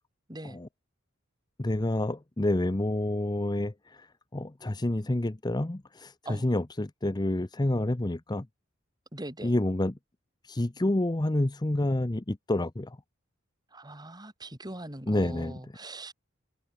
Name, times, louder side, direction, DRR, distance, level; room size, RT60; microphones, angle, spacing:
voice 1, 1.6-8.5 9.4-9.9 10.4-13.0 15.1-15.6, left 1 dB, 20° left, 0.7 m, -28 dB
voice 2, 9.1-9.5 13.7-16.1, right 1 dB, 20° right, 3.8 m, -41 dB
head